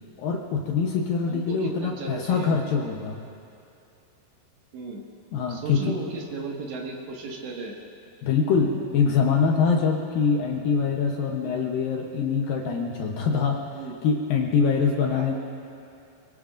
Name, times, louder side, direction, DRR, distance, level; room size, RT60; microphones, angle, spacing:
voice 1, 0.2-3.2 5.3-6.0 8.2-13.6 14.0-15.3, left 5 dB, 70° left, 1 dB, 2.3 m, -24 dB
voice 2, 1.3-2.5 4.7-5.0 5.5-7.7 13.7-14.0 15.1-15.3, right 3 dB, 80° right, -1 dB, 4.0 m, -35 dB
25.0 x 22.5 x 2.6 m, 2.6 s
omnidirectional pair, 4.9 m